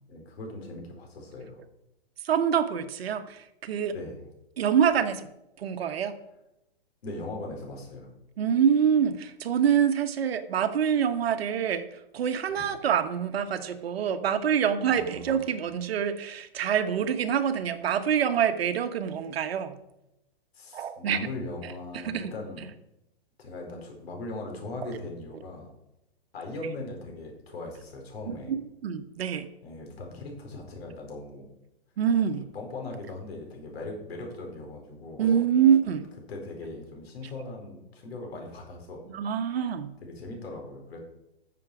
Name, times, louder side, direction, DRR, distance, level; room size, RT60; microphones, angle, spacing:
voice 1, 0.1-1.6 3.9-4.2 7.0-8.1 12.5-12.7 14.9-15.5 20.5-22.7 23.4-25.7 26.3-28.5 29.6-31.5 32.5-35.3 36.3-39.1 40.0-41.0, left 2 dB, 75° left, 1 dB, 4.6 m, -39 dB
voice 2, 2.2-3.9 4.6-5.3 5.6-6.2 8.4-19.8 20.7-21.3 22.0-22.3 24.8-24.9 28.3-29.5 32.0-32.5 35.2-36.1 39.1-39.9, right 8 dB, 75° right, 10 dB, 1.2 m, -26 dB
13.5 x 7.1 x 4.9 m, 0.88 s
hypercardioid pair, 135°, 31 cm